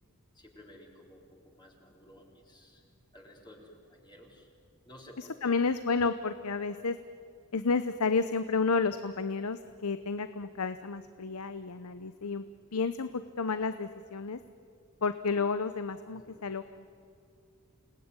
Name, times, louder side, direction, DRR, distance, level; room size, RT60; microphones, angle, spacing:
voice 1, 0.3-2.8 3.1-4.5 4.8-5.6 16.1-16.5, left 1 dB, 20° left, -1 dB, 4.1 m, -54 dB
voice 2, 5.2-7.0 7.5-12.4 12.7-14.4 15.0-16.8, left 4 dB, 85° left, 11 dB, 0.8 m, -31 dB
28.5 x 19.0 x 9.8 m, 2.4 s
head